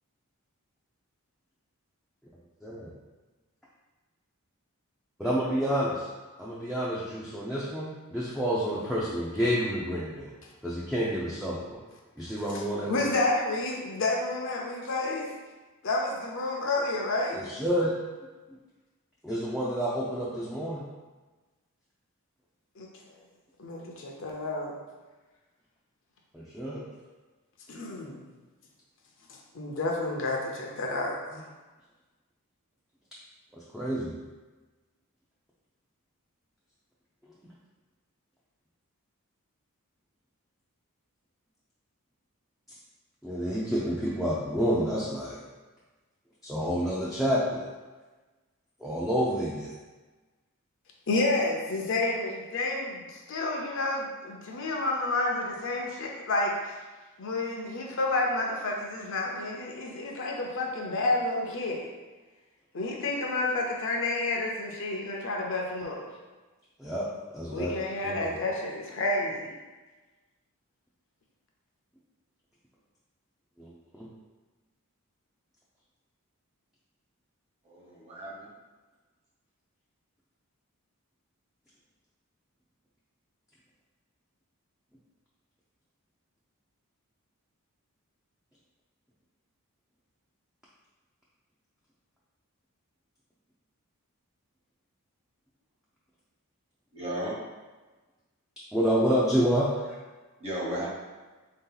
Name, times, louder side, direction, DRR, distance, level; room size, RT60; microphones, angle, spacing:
voice 1, 5.2-6.1 6.4-10.3 10.6-11.8 12.2-13.1 17.3-17.9 19.2-20.8 26.3-26.8 33.7-34.1 43.2-45.4 46.4-47.6 48.8-49.7 66.8-67.1 67.3-67.7 68.0-68.2 73.6-74.1 98.7-99.7, equal, ahead, -8 dB, 0.5 m, -29 dB
voice 2, 12.5-15.3 15.8-17.4 22.8-22.9 23.6-24.8 27.7-28.2 29.5-31.4 51.1-56.7 57.2-61.9 62.7-66.1 67.5-69.5, left 2 dB, 60° left, 0 dB, 0.7 m, -30 dB
voice 3, 77.6-78.5 96.9-97.5 100.4-100.9, equal, 25° right, -5 dB, 1.1 m, -35 dB
3.7 x 2.8 x 3.9 m, 1.2 s
head